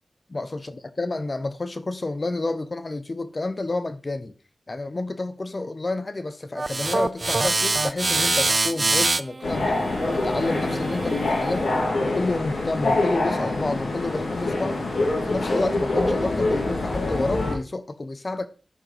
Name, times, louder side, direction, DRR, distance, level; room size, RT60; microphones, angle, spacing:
voice 1, 0.3-4.4 4.7-9.8 10.1-11.7 12.0-14.9 15.2-18.5, left 2 dB, 40° left, 0.7 m, -29 dB
sound 1, 6.6-11.7, right 2 dB, 40° right, 0.4 m, -25 dB
sound 2, 9.4-17.5, left 2 dB, 90° left, 2.6 m, -25 dB
11.0 x 4.9 x 3.3 m
wide cardioid pair, 65°, 0 cm